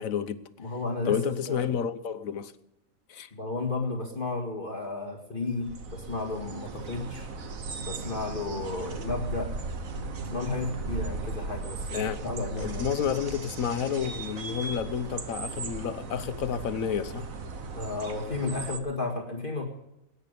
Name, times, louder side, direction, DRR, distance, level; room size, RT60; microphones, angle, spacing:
voice 1, 0.0-0.4 1.1-2.5 3.1-3.3 11.9-12.2 12.6-17.3, left 8 dB, 85° left, 1.3 m, -30 dB
voice 2, 0.6-1.7 3.3-7.3 7.8-9.5 10.3-12.9 17.8-19.7, left 3 dB, 40° left, 2.2 m, -33 dB
sound 1, 5.6-18.8, right 3 dB, 85° right, 1.7 m, -37 dB
20.0 x 9.6 x 6.8 m
omnidirectional pair, 1.4 m